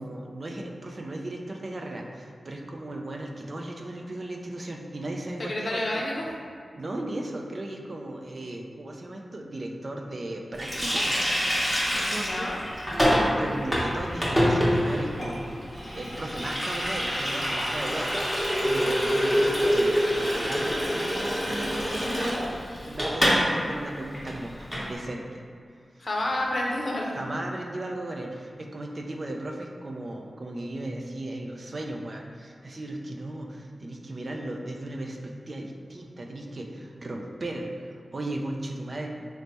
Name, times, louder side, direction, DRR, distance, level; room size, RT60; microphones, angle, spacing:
voice 1, 0.0-6.0 6.7-11.2 11.7-12.5 13.4-15.6 15.9-22.5 22.9-25.4 27.1-39.1, right 1 dB, 50° right, 1 dB, 0.4 m, -36 dB
voice 2, 5.5-6.2 11.9-12.6 26.0-27.2, left 1 dB, 60° left, -2 dB, 0.6 m, -29 dB
Water tap faucet, 10.6-23.5 23.7-23.8 24.1-24.9, equal, ahead, 0.9 m, -26 dB
3.2 x 2.1 x 4.1 m, 2.3 s
wide cardioid pair, 65°, 0 cm